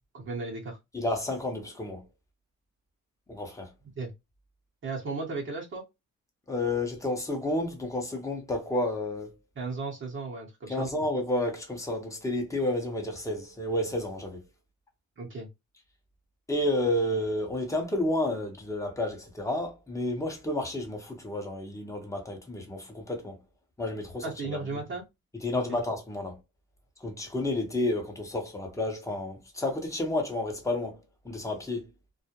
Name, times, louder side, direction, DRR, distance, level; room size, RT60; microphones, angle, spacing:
voice 1, 0.0-0.8 4.0-4.1 4.8-5.8 9.5-10.9 15.2-15.5 24.2-25.0 25.7-25.8, right 3 dB, 40° right, 1.0 m, -35 dB
voice 2, 0.9-2.0 3.3-3.7 6.5-9.3 10.7-14.4 16.5-23.4 23.8-24.8 25.4-26.4 27.0-31.9, left 1 dB, 10° left, 0.9 m, -31 dB
2.3 x 2.1 x 2.8 m
cardioid pair, 90°, 30 cm